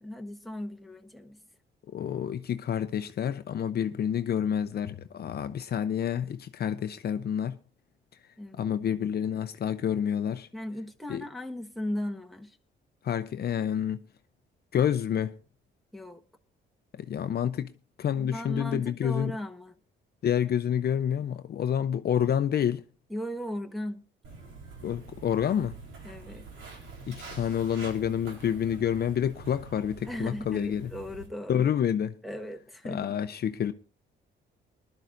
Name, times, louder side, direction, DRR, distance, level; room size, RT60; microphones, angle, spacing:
voice 1, 0.0-1.4 8.4-8.7 10.5-12.5 15.9-16.2 18.1-19.7 23.1-24.0 26.0-26.4 30.1-31.7 32.2-33.1, left 1 dB, ahead, 1.4 m, -37 dB
voice 2, 1.9-7.6 8.5-10.5 11.1-11.2 13.0-14.0 14.7-15.4 17.0-17.7 18.0-19.4 20.2-22.8 24.8-25.7 27.1-30.9 31.5-32.1 32.9-33.7, left 9 dB, 55° left, 0.6 m, -28 dB
Walk footsteps, 24.2-31.3, right 3 dB, 85° right, 4.0 m, -46 dB
20.0 x 12.0 x 2.6 m
cardioid pair, 90°, 20 cm